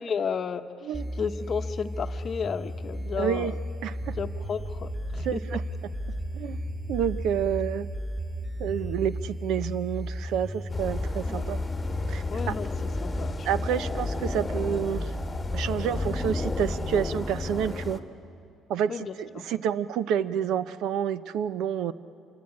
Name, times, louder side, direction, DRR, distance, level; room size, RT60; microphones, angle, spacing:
voice 1, 0.0-0.9 1.2-3.6 4.2-5.4 11.3-11.5 12.3-12.7 13.0-13.5 18.9-19.4, left 6 dB, 35° left, 9 dB, 0.9 m, -33 dB
sound 1, 0.9-16.9, left 1 dB, 10° right, 2.2 m, -35 dB
voice 2, 3.2-3.5 3.8-4.2 5.2-5.6 6.3-6.6 6.9-7.9 8.6-11.6 12.1-12.6 13.4-15.1 15.5-18.0 18.7-21.9, right 9 dB, 70° right, 14 dB, 0.8 m, -29 dB
sound 2, 4.0-9.4, right 5 dB, 30° right, 1.0 m, -42 dB
sound 3, 10.7-18.0, left 3 dB, 15° left, 1.4 m, -33 dB
27.0 x 24.5 x 8.7 m, 2.5 s
cardioid pair, 150°, 0 cm